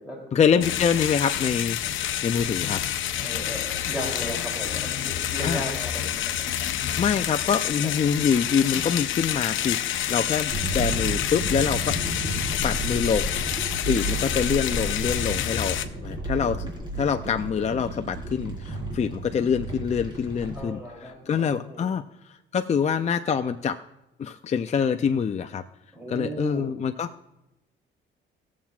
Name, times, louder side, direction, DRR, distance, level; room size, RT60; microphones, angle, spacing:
voice 1, 0.3-1.8 2.2-2.8 5.4-5.6 7.0-11.9 12.6-13.3 13.8-16.7 17.0-20.8 21.3-23.8 24.2-25.6 26.1-27.1, left 7 dB, 35° left, 8 dB, 0.5 m, -25 dB
sound 1, 0.6-15.9, left 11 dB, 80° left, 0.7 m, -28 dB
voice 2, 3.2-6.5 7.8-7.9 20.5-21.9 25.9-26.7, equal, 5° right, -2 dB, 2.9 m, -36 dB
sound 2, 10.5-20.6, right 1 dB, 20° right, 4.1 m, -32 dB
19.5 x 7.3 x 2.4 m, 0.95 s
cardioid pair, 90°, 20 cm